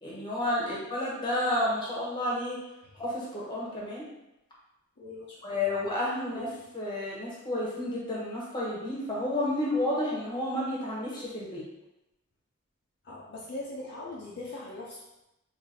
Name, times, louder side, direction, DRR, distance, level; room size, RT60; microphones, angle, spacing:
voice 1, 0.0-2.6 2.9-4.0 5.4-11.7, left 1 dB, 20° left, -5 dB, 0.9 m, -31 dB
voice 2, 5.0-5.3 5.6-5.9 6.3-6.4 13.1-15.0, left 2 dB, 55° left, -5 dB, 0.5 m, -40 dB
3.9 x 2.5 x 2.7 m, 0.90 s
head